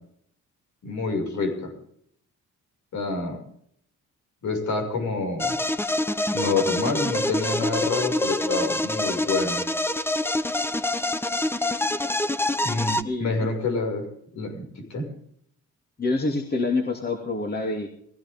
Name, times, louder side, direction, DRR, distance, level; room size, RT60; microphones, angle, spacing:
voice 1, 0.8-1.7 2.9-3.4 4.4-5.5 6.3-9.6 12.6-14.1 14.3-15.1, left 3 dB, 70° left, 3 dB, 6.3 m, -27 dB
sound 1, 5.4-13.0, left 1 dB, 10° left, 0.8 m, -26 dB
voice 2, 13.0-13.5 16.0-17.9, left 3 dB, 30° left, 3 dB, 2.9 m, -26 dB
20.5 x 16.0 x 3.7 m, 0.67 s
cardioid pair, 90°, 30 cm